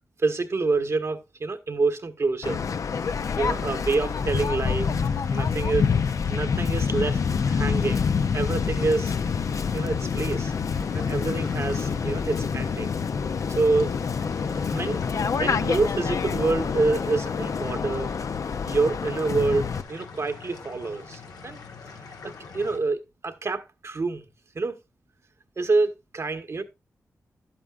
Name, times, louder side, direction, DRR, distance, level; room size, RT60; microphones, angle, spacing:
voice 1, 0.2-2.6 3.4-4.9 5.3-8.1 8.3-9.1 9.7-10.5 10.9-12.9 13.5-14.0 14.7-15.0 15.3-18.1 18.6-21.6 22.5-24.3 24.5-24.8 25.6-26.6, right 3 dB, 55° right, 1.2 m, -27 dB
Waves surf, 2.4-19.8, left 6 dB, 65° left, 0.5 m, -27 dB
sound 1, 2.8-22.8, left 4 dB, 85° left, 1.4 m, -44 dB
11.0 x 8.8 x 2.4 m
cardioid pair, 60°, 6 cm